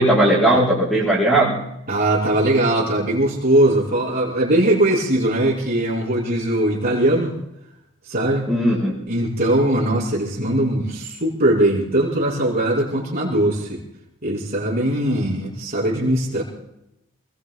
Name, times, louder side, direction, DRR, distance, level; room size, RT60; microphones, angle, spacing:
voice 1, 0.0-1.6 8.5-9.0, right 1 dB, ahead, -7 dB, 5.0 m, -17 dB
voice 2, 1.9-7.3 8.1-8.5 9.1-13.8 14.2-16.4, right 1 dB, 45° right, -6 dB, 5.5 m, -20 dB
29.5 x 21.0 x 2.2 m, 0.85 s
head